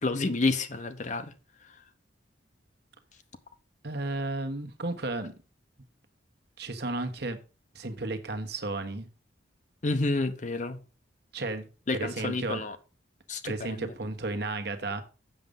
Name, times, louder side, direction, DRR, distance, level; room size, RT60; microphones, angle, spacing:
voice 1, 0.0-1.3 1.7-1.8 9.8-10.8 11.9-12.8 13.3-13.9, left 3 dB, 40° left, 0.8 m, -29 dB
voice 2, 3.8-5.3 6.6-7.4 7.7-9.1 11.3-11.7 11.9-12.6 13.4-15.0, right 2 dB, 55° right, 1.3 m, -33 dB
7.8 x 6.7 x 5.3 m
head